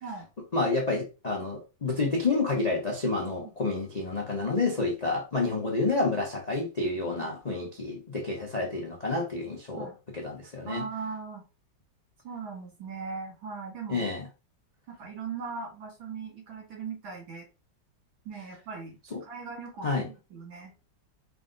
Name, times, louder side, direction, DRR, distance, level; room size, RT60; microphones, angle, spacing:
voice 1, 0.5-9.9 10.1-10.8 13.9-14.3 19.1-19.2 19.8-20.1, left 3 dB, 60° left, 0.4 m, -29 dB
voice 2, 10.7-11.4 12.2-14.1 14.9-17.5 18.3-20.7, right 5 dB, 70° right, 2.6 m, -39 dB
4.8 x 2.6 x 3.8 m
omnidirectional pair, 2.2 m